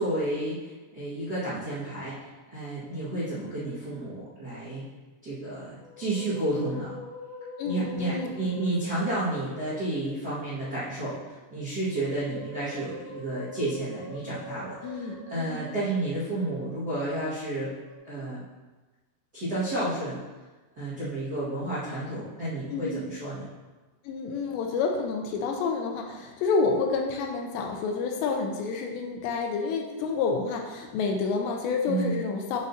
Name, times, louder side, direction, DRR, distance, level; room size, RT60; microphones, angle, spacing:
voice 1, 0.0-4.8 5.2-6.9 7.6-17.7 18.1-18.4 19.3-20.2 20.8-23.5 31.9-32.2, right 2 dB, 65° right, -12 dB, 0.9 m, -31 dB
Musical instrument, 5.7-10.3 11.6-16.4 17.6-18.0, left 1 dB, 65° left, 2.2 m, -44 dB
voice 2, 7.6-8.3 14.8-15.6 22.7-23.0 24.0-32.6, left 4 dB, 80° left, 2 dB, 3.0 m, -29 dB
7.9 x 7.9 x 2.7 m, 1.2 s
omnidirectional pair, 5.1 m